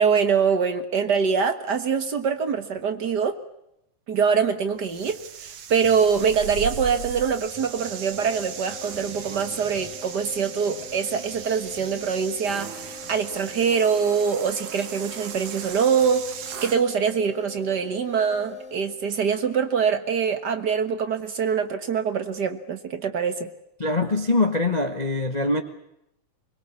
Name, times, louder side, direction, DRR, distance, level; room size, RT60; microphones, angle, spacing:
voice 1, 0.0-3.4 4.1-23.5, right 6 dB, 45° right, 9 dB, 1.4 m, -24 dB
sound 1, 4.8-16.8, right 8 dB, 75° right, 3.3 m, -37 dB
sound 2, 7.6-19.3, left 3 dB, 20° left, 4.0 m, -43 dB
voice 2, 23.8-25.6, left 2 dB, 70° left, 6 dB, 0.4 m, -23 dB
23.5 x 22.5 x 8.5 m, 0.82 s
omnidirectional pair, 3.6 m